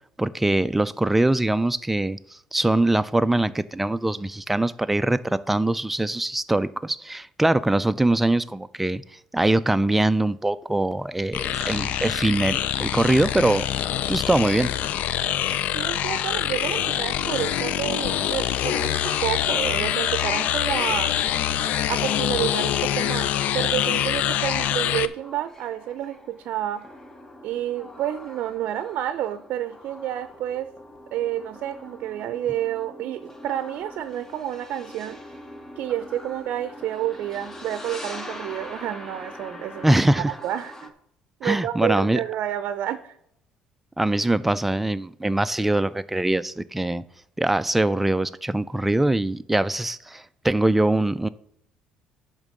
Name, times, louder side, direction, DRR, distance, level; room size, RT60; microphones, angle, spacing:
voice 1, 0.2-9.0 9.3-13.7 14.1-14.7 39.8-40.3 41.4-42.2 44.0-47.0 47.4-51.3, right 1 dB, 5° right, 0.4 m, -22 dB
sound 1, 11.3-25.1, left 11 dB, 60° left, 0.4 m, -25 dB
voice 2, 15.7-21.2 21.9-26.8 27.4-30.7 31.1-35.2 35.8-40.9 41.4-43.2, right 12 dB, 60° right, 0.5 m, -30 dB
sound 2, 23.5-40.9, left 1 dB, 15° left, 0.9 m, -43 dB
10.5 x 3.7 x 6.4 m
cardioid pair, 125°, 3 cm